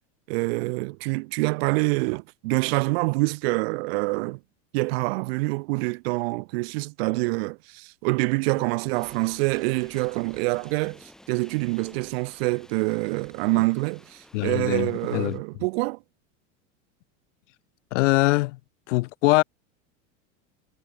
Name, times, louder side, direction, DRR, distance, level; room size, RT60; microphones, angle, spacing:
voice 1, 0.3-4.4 4.7-16.0, right 26 dB, 50° right, 0.5 m, -26 dB
sound 1, 8.9-15.4, left 1 dB, ahead, 7.9 m, -53 dB
voice 2, 14.3-15.4 17.9-18.6 18.9-19.4, left 21 dB, 70° left, 1.3 m, -22 dB
supercardioid pair, 160°, 38 cm